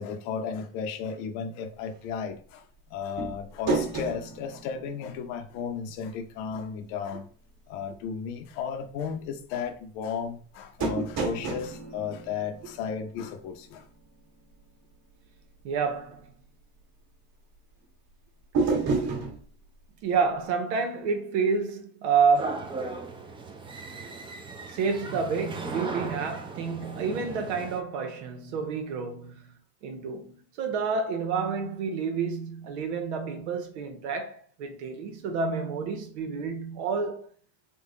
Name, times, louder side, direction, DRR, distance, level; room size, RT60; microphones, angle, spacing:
voice 1, 0.0-2.6 2.9-7.3 7.7-13.8, left 6 dB, 70° left, 0.7 m, -34 dB
sound 1, 3.2-5.8 6.1-6.2 10.8-13.3 18.5-19.4, right 3 dB, 50° right, 1.3 m, -30 dB
voice 2, 15.6-16.3 20.0-22.7 24.7-29.5 29.8-37.3, right 5 dB, 90° right, 1.0 m, -29 dB
sound 2, 22.4-27.8, right 3 dB, 15° right, 0.5 m, -37 dB
3.8 x 2.2 x 3.7 m
supercardioid pair, 115°, 33 cm